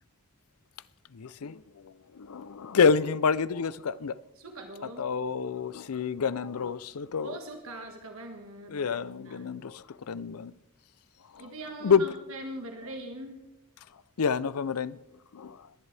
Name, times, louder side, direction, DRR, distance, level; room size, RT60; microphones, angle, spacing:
voice 1, 1.1-4.2 5.0-7.4 8.7-10.5 11.2-11.5 11.8-12.1 13.9-15.0 15.3-15.7, left 6 dB, 85° left, 0.5 m, -28 dB
voice 2, 4.4-5.1 7.2-8.8 9.3-9.5 11.4-13.4, right 1 dB, 70° right, 1.7 m, -41 dB
21.5 x 11.0 x 3.4 m
head